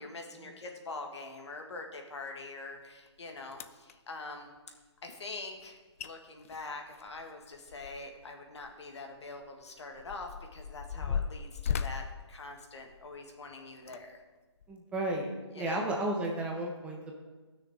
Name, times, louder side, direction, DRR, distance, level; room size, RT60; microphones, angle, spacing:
voice 1, 0.0-4.5 5.0-14.2 15.5-15.9, left 3 dB, 70° left, 3 dB, 1.9 m, -44 dB
sound 1, 3.1-3.2 3.5-3.9 5.7-5.8 6.0-6.1 6.4-8.2 8.6-8.7 9.4-13.2 13.8-14.0 14.6-14.7, left 7 dB, 30° left, 0.4 m, -37 dB
voice 2, 14.7-17.1, right 1 dB, 10° right, 0 dB, 0.7 m, -33 dB
16.0 x 6.4 x 3.7 m, 1.3 s
hypercardioid pair, 155°, 15 cm